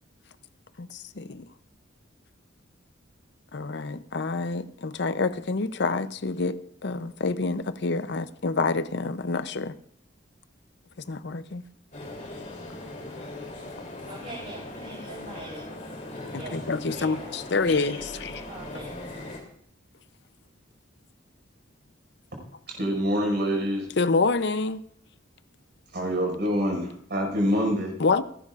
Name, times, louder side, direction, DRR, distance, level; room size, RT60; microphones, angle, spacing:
voice 1, 0.8-1.5 3.5-9.8 11.1-11.6 16.3-18.4 24.0-24.8 28.0-28.2, left 3 dB, 60° left, 0.6 m, -27 dB
sound 1, 11.9-19.4, left 2 dB, 40° left, 3.1 m, -39 dB
voice 2, 14.1-15.6 16.3-17.4 17.8-19.2, right 1 dB, 40° right, 3.6 m, -43 dB
voice 3, 22.7-23.9 25.9-27.9, equal, 55° right, 5.3 m, -26 dB
28.5 x 10.5 x 2.5 m
head